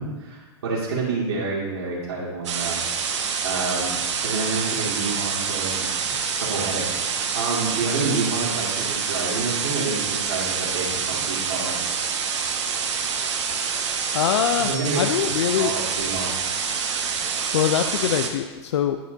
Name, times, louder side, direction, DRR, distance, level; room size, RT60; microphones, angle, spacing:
voice 1, 0.0-11.8 14.7-16.3, right 3 dB, 60° right, -8 dB, 2.2 m, -29 dB
sound 1, 2.4-18.3, right 6 dB, 85° right, 1.1 m, -26 dB
voice 2, 14.1-14.7 15.0-15.8 17.5-19.0, left 9 dB, 75° left, 8 dB, 0.4 m, -23 dB
11.0 x 4.3 x 3.9 m, 1.2 s
supercardioid pair, 170°, 15 cm